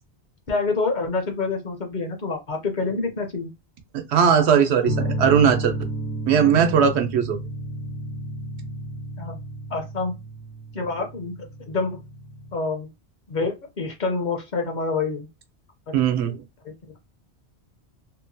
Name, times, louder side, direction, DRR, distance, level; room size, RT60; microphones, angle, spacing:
voice 1, 0.5-3.5 9.2-9.4 9.7-10.1 10.7-12.0 12.5-12.9 13.3-15.3 16.6-16.7, left 4 dB, 55° left, 0.6 m, -27 dB
voice 2, 3.9-5.7 6.3-7.4 15.9-16.4, right 7 dB, 85° right, 0.9 m, -19 dB
sound 1, 4.8-12.5, right 1 dB, 75° left, 0.9 m, -32 dB
2.8 x 2.1 x 2.6 m
omnidirectional pair, 1.1 m